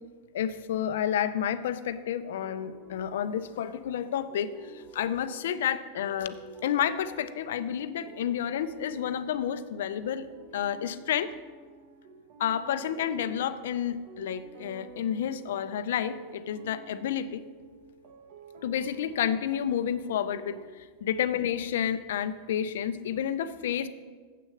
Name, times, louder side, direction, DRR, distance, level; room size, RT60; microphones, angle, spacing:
voice 1, 0.3-10.3 10.5-11.3 12.4-17.4 18.6-20.6 21.0-23.9, left 9 dB, 85° left, 12 dB, 0.6 m, -30 dB
sound 1, 2.4-20.6, right 3 dB, 60° right, 1.2 m, -50 dB
7.7 x 6.4 x 7.7 m, 1.5 s
supercardioid pair, 150°, 0 cm